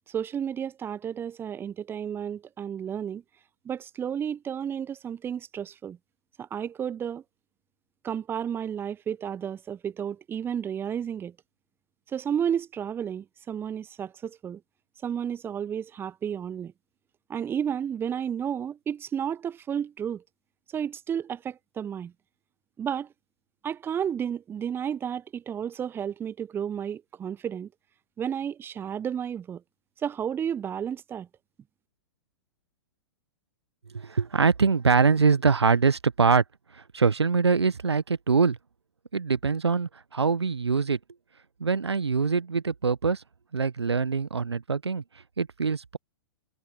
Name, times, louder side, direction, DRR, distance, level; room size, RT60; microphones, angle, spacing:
voice 1, 0.1-3.2 3.6-6.0 6.4-7.2 8.0-11.3 12.1-14.6 15.0-16.7 17.3-20.2 20.7-22.1 22.8-23.1 23.6-27.7 28.2-29.6 30.0-31.3, right 8 dB, 15° right, 1.0 m, -32 dB
voice 2, 33.9-36.4 36.9-38.6 39.1-41.0 41.6-43.2 43.5-45.0 45.4-46.0, right 5 dB, 75° right, 1.1 m, -23 dB
figure-of-eight pair, 105°, 14 cm